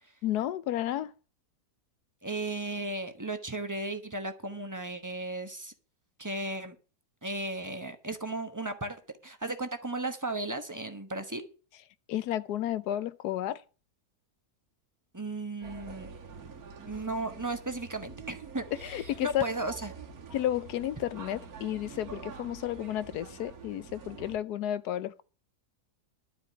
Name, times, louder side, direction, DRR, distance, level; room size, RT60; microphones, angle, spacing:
voice 1, 0.2-1.1 12.1-13.6 18.8-19.4 20.3-25.2, left 12 dB, 90° left, 1.3 m, -32 dB
voice 2, 2.2-5.7 6.2-6.8 7.2-11.5 15.1-16.1 16.8-19.9, right 2 dB, 15° right, 1.0 m, -35 dB
sound 1, 15.6-24.4, right 5 dB, 70° right, 1.9 m, -46 dB
12.0 x 5.1 x 8.7 m
omnidirectional pair, 1.6 m